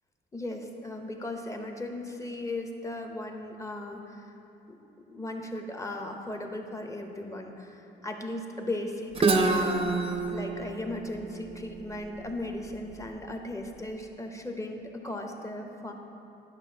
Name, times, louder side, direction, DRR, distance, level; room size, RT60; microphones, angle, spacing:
voice 1, 0.3-4.3 4.7-4.8 5.1-9.9 10.3-15.9, left 1 dB, 15° left, 3 dB, 0.7 m, -37 dB
Guitar, 9.1-12.9, right 3 dB, 30° right, 0.5 m, -28 dB
10.5 x 5.8 x 2.7 m, 2.8 s
cardioid pair, 90°, 20 cm